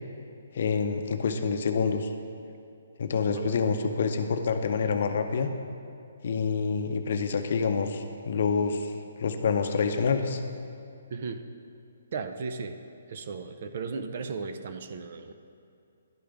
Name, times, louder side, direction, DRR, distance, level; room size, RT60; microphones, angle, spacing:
voice 1, 0.5-2.1 3.0-5.5 6.2-8.9 9.2-10.4, left 5 dB, 55° left, 6 dB, 0.6 m, -27 dB
voice 2, 11.1-11.4 12.1-12.8 13.1-15.3, right 4 dB, 50° right, 8 dB, 0.5 m, -36 dB
11.5 x 5.0 x 3.4 m, 2.6 s
hypercardioid pair, 160°, 0 cm